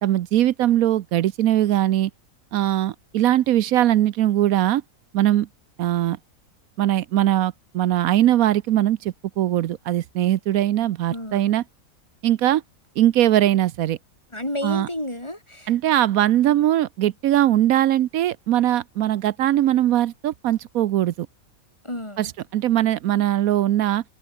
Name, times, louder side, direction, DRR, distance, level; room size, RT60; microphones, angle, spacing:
voice 1, 0.0-2.1 2.5-4.8 5.1-5.5 5.8-6.2 6.8-11.6 12.2-12.6 13.0-14.0 14.6-14.9 15.7-21.3 22.2-24.0, right 12 dB, 80° right, 1.1 m, -20 dB
voice 2, 11.1-11.5 14.3-15.7 21.8-22.3, left 1 dB, 20° left, 4.6 m, -31 dB
omnidirectional pair, 1.5 m